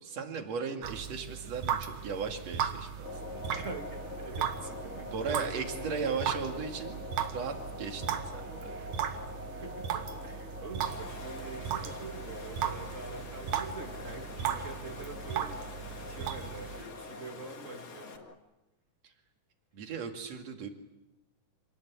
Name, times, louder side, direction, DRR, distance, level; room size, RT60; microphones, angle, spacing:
voice 1, 0.0-3.6 5.1-7.0 7.3-8.9 19.0-19.1 19.7-20.7, right 5 dB, 55° right, 4 dB, 3.4 m, -37 dB
sound 1, 0.8-16.8, right 9 dB, 75° right, 2.9 m, -37 dB
sound 2, 3.0-18.3, left 3 dB, 25° left, 1.7 m, -45 dB
voice 2, 3.5-6.2 9.5-18.2, right 3 dB, 30° right, 4 dB, 1.9 m, -45 dB
Water, 10.8-18.2, left 5 dB, 60° left, 3.3 m, -49 dB
27.0 x 19.0 x 8.7 m, 1.0 s
omnidirectional pair, 3.6 m